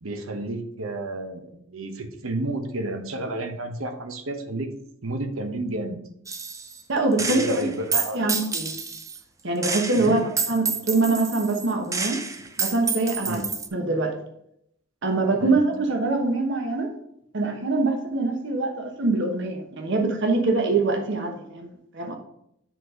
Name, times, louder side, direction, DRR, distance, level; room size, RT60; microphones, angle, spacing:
voice 1, 0.0-4.7 5.0-6.0 7.1-8.3 9.9-10.2 13.2-13.4 15.4-15.6, right 2 dB, 85° right, 6 dB, 1.0 m, -31 dB
Gunshot gunfire, 6.3-6.8 7.2-9.2 9.6-13.7, right 5 dB, 15° right, 0.5 m, -29 dB
voice 2, 6.9-8.7 9.4-12.2 12.6-13.4 13.7-14.2 15.0-16.9 17.3-22.1, right 3 dB, 60° right, 4 dB, 1.1 m, -24 dB
7.5 x 4.1 x 4.7 m, 0.74 s
head